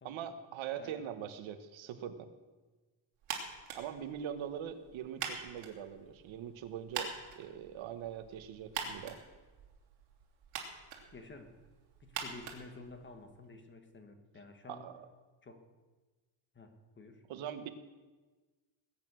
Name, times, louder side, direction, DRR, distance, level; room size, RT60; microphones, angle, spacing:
voice 1, 0.0-2.3 3.7-9.2 14.7-15.1 17.3-17.7, right 9 dB, 70° right, 10 dB, 1.3 m, -42 dB
sound 1, 3.2-13.4, right 6 dB, 85° right, 3.1 m, -45 dB
voice 2, 11.1-11.6 12.0-14.9 15.4-15.7 16.5-17.2, left 3 dB, 25° left, 7 dB, 1.3 m, -51 dB
20.0 x 9.0 x 6.3 m, 1.3 s
cardioid pair, 175°, 49 cm